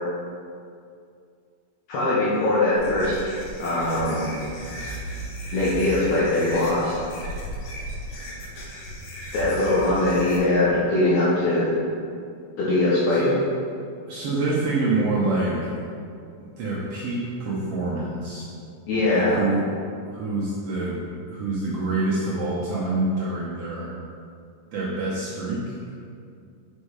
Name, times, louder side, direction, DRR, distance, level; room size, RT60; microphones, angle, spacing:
voice 1, 1.9-3.3 3.6-4.2 5.5-7.0 9.3-11.8 12.6-13.2 18.9-19.4, left 2 dB, 65° left, -8 dB, 2.2 m, -21 dB
sound 1, 2.7-10.4, equal, 85° left, 3.0 m, -35 dB
voice 2, 14.1-15.7 16.6-18.5 19.1-19.7 20.1-21.0 21.3-23.9 24.7-25.6, right 2 dB, 70° right, -7 dB, 1.5 m, -26 dB
6.1 x 5.4 x 4.8 m, 2.4 s
omnidirectional pair, 4.0 m